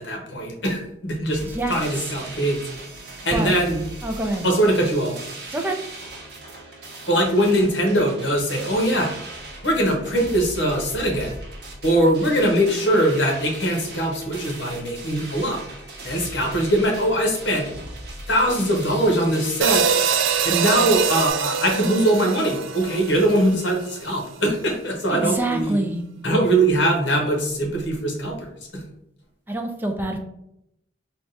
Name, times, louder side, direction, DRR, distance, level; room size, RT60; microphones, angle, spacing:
voice 1, 0.0-1.4 1.7-2.6 3.2-3.8 4.4-5.1 7.1-9.1 9.6-11.3 11.8-15.6 16.0-17.7 18.3-19.9 20.4-25.8 26.2-28.8, right 1 dB, 70° left, 1 dB, 1.1 m, -21 dB
sound 1, 1.3-21.3, right 2 dB, 55° right, 0.8 m, -39 dB
voice 2, 1.4-2.1 3.3-3.6 4.0-4.5 5.5-5.8 25.1-26.1 29.5-30.2, right 2 dB, 10° right, 3 dB, 0.4 m, -26 dB
sound 2, 19.6-24.0, right 7 dB, 80° right, 0.4 m, -24 dB
3.6 x 2.3 x 3.9 m, 0.78 s
head